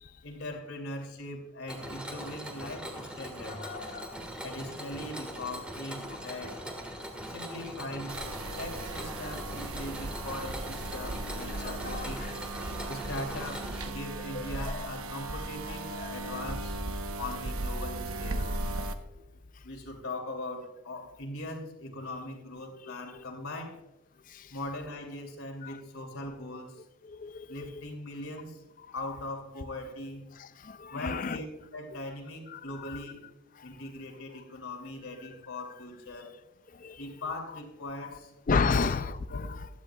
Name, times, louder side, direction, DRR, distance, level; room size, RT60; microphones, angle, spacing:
voice 1, 0.2-3.6 4.4-6.6 7.3-8.2 8.6-12.3 12.9-16.8 17.2-18.5 19.6-23.8 24.5-26.8 27.5-28.6 28.9-30.3 30.9-31.5 31.7-33.3 33.6-36.3 37.0-38.3 38.7-38.9 39.3-39.5, left 1 dB, 80° left, 2.6 m, -40 dB
Mechanisms, 1.7-13.9, equal, 5° right, 1.6 m, -41 dB
voice 2, 3.5-4.2 6.1-6.2 6.4-6.6 9.5-9.6 11.6-12.3 12.7-12.9 14.3-14.9 15.9-16.1 18.5-18.6 22.8-22.9 24.3-24.5 25.6-25.8 27.1-27.5 30.6-31.4 32.5-33.0 36.7-37.0 38.5-39.7, left 4 dB, 40° left, 0.4 m, -33 dB
sound 1, 8.1-18.9, right 2 dB, 80° right, 0.9 m, -37 dB
16.0 x 13.0 x 2.3 m
head